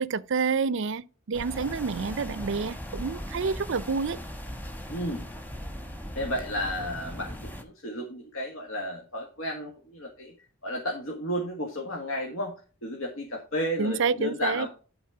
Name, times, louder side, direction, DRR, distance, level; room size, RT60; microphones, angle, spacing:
voice 1, 0.0-4.2 13.8-14.7, right 5 dB, 60° right, 0.5 m, -28 dB
sound 1, 1.3-7.6, equal, 10° left, 1.3 m, -38 dB
voice 2, 4.9-5.3 6.2-10.3 10.6-14.7, equal, 70° left, 1.7 m, -33 dB
11.5 x 4.1 x 4.9 m
head